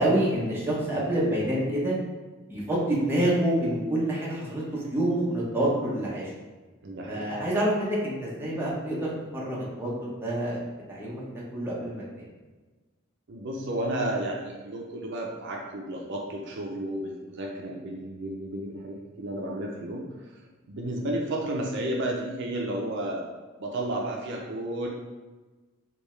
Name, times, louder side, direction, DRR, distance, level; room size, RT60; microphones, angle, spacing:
voice 1, 0.0-2.0 2.5-6.3 7.1-10.6 10.9-11.3 11.5-12.3, right 1 dB, 10° right, -6 dB, 0.8 m, -27 dB
voice 2, 6.8-7.3 13.3-20.3 20.7-23.3 23.6-24.9, right 1 dB, 60° right, -1 dB, 0.5 m, -32 dB
3.4 x 2.7 x 3.1 m, 1.3 s
head